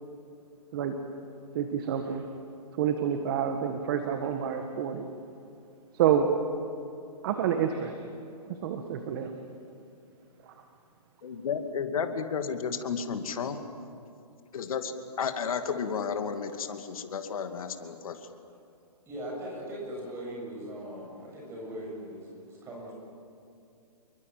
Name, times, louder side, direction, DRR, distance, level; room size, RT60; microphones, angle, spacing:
voice 1, 1.5-2.2 2.8-5.1 5.9-6.3 7.2-8.1 8.6-9.3 10.5-10.6, right 8 dB, 35° right, 6 dB, 1.6 m, -28 dB
voice 2, 11.2-13.6 14.5-18.2, left 6 dB, 60° left, 7 dB, 2.4 m, -32 dB
voice 3, 19.1-22.9, right 1 dB, 15° right, -3 dB, 7.5 m, -39 dB
28.0 x 23.0 x 7.7 m, 2.7 s
hypercardioid pair, 155°, 20 cm